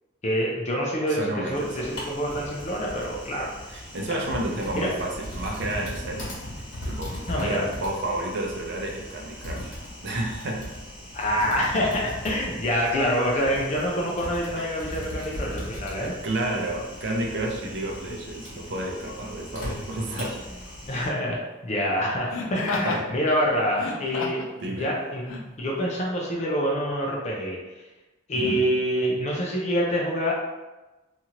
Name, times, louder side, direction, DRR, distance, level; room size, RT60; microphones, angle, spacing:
voice 1, 0.2-3.5 4.7-4.9 7.3-7.7 11.1-16.1 20.8-24.5 24.8-27.6 28.3-30.3, equal, 35° left, -2 dB, 0.4 m, -26 dB
voice 2, 1.1-2.0 3.7-6.3 6.8-9.7 10.0-10.7 14.6-14.7 16.0-20.4 22.8-23.1 24.6-24.9 28.3-28.6, right 1 dB, 60° right, 1 dB, 0.5 m, -31 dB
Typing, 1.5-21.1, left 1 dB, 60° left, 1.2 m, -38 dB
Laughter, 18.1-18.3 19.6-20.0 22.3-23.1 23.7-24.5 25.3-25.4, left 3 dB, 85° left, 0.5 m, -31 dB
2.8 x 2.4 x 2.8 m, 1.1 s
head